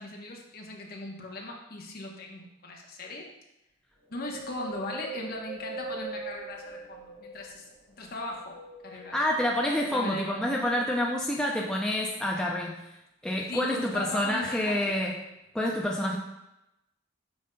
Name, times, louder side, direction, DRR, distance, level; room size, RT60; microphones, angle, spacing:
voice 1, 0.0-3.3 4.1-7.7 8.0-8.6 8.8-9.2 9.9-10.4 13.5-15.0, left 2 dB, 45° left, 0 dB, 1.0 m, -38 dB
Wind, 4.1-7.7 8.2-9.5 10.0-10.1, right 3 dB, 25° right, 1.3 m, -41 dB
voice 2, 9.1-12.8 13.2-15.2 15.5-16.2, left 1 dB, 5° left, -2 dB, 0.4 m, -28 dB
8.6 x 5.3 x 2.2 m, 0.91 s
head